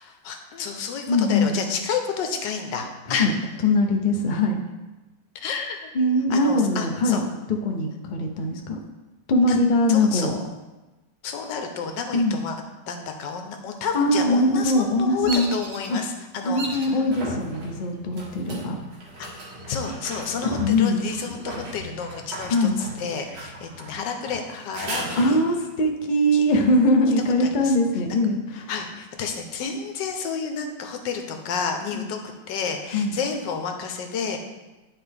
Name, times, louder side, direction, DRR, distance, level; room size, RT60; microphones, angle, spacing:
voice 1, 0.0-3.4 5.3-5.9 6.3-7.2 9.4-10.4 11.2-12.6 12.9-17.0 19.2-19.3 19.7-25.4 26.3-26.4 27.4-27.8 28.5-34.4, left 6 dB, 85° left, 5 dB, 1.4 m, -30 dB
voice 2, 1.1-1.6 3.1-3.3 3.6-4.6 5.9-7.2 7.6-8.8 9.3-10.3 12.1-12.4 13.9-15.5 15.9-16.0 16.4-18.8 20.6-21.0 22.4-22.8 25.1-28.4 31.9-32.1 32.9-33.2, left 1 dB, 65° left, 3 dB, 0.4 m, -21 dB
Bird vocalization bird call bird song, 15.2-16.0 16.5-17.0 17.6-18.1 19.2-20.0 20.3-20.4 20.9-22.3, right 2 dB, 60° right, 1.4 m, -36 dB
sound 1, 15.2-15.3 16.6-25.7 29.1-29.2, equal, 75° right, 2.0 m, -37 dB
10.0 x 4.2 x 3.4 m, 1.1 s
omnidirectional pair, 1.9 m